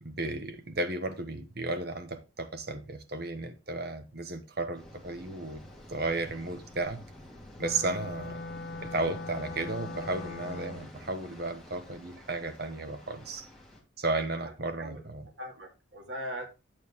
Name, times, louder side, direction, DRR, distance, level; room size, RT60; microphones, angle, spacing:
voice 1, 0.0-5.6 5.9-7.0 7.6-8.4 8.8-13.5 14.0-15.3, right 2 dB, 55° right, 1.2 m, -34 dB
sound 1, 4.7-13.8, left 1 dB, ahead, 2.3 m, -49 dB
Wind instrument woodwind instrument, 7.6-11.0, left 2 dB, 55° left, 0.7 m, -41 dB
voice 2, 14.8-16.5, equal, 70° right, 2.3 m, -40 dB
9.2 x 7.9 x 3.6 m
head